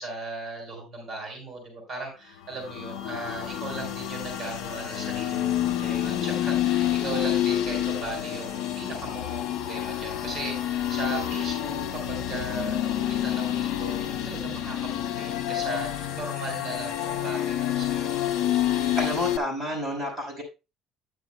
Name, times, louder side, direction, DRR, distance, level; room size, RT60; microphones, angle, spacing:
voice 1, 0.0-11.8 12.1-18.2, right 2 dB, 25° right, 1 dB, 4.1 m, -37 dB
sound 1, 2.5-19.4, left 11 dB, 75° left, 1.7 m, -28 dB
voice 2, 19.0-20.4, equal, 5° right, -4 dB, 5.5 m, -30 dB
13.0 x 10.0 x 2.2 m, 0.27 s
cardioid pair, 175°, 0 cm